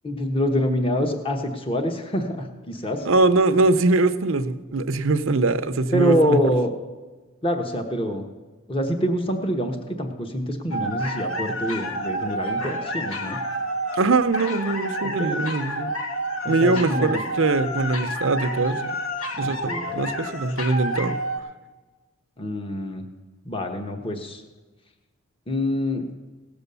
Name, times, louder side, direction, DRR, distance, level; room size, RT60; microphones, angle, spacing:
voice 1, 0.0-3.1 5.9-6.7 7.4-8.3 8.7-13.4 15.0-15.4 16.4-17.2 19.4-20.1 22.4-23.1 23.4-24.4 25.5-26.1, equal, 25° left, 5 dB, 1.0 m, -26 dB
voice 2, 3.0-6.4 13.9-15.9 16.5-18.9 19.4-21.2, right 3 dB, 65° right, 11 dB, 0.7 m, -22 dB
sound 1, 10.7-21.4, equal, 70° left, 1.3 m, -29 dB
17.0 x 7.0 x 6.8 m, 1.3 s
head